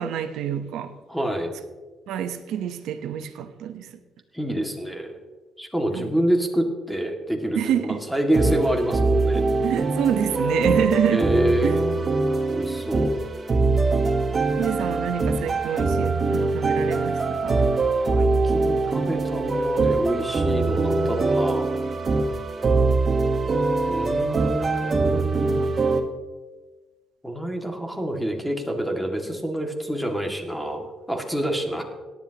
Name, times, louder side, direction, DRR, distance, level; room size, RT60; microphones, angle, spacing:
voice 1, 0.0-0.9 2.1-3.9 5.9-6.1 7.6-8.0 9.6-11.3 11.6-11.7 14.6-17.7, right 9 dB, 85° right, 0.8 m, -27 dB
voice 2, 1.1-1.5 4.3-5.1 5.6-9.4 11.1-11.8 12.5-13.2 18.1-21.7 23.9-25.6 27.2-31.8, right 1 dB, ahead, 2.1 m, -27 dB
sound 1, 8.3-26.0, right 3 dB, 35° right, 1.3 m, -23 dB
18.0 x 10.5 x 2.9 m
cardioid pair, 90°, 0 cm